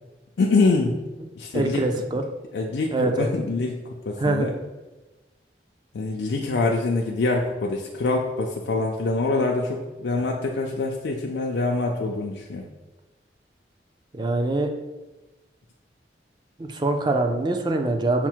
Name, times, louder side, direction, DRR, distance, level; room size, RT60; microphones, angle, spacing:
voice 1, 0.4-1.0 1.4-1.8 2.5-4.5 5.9-12.7, left 3 dB, 75° left, 0 dB, 0.4 m, -25 dB
voice 2, 1.5-2.2 2.9-3.3 4.2-4.5 14.1-14.7 16.6-18.3, right 2 dB, 25° right, 5 dB, 0.4 m, -24 dB
5.8 x 2.1 x 4.4 m, 1.1 s
head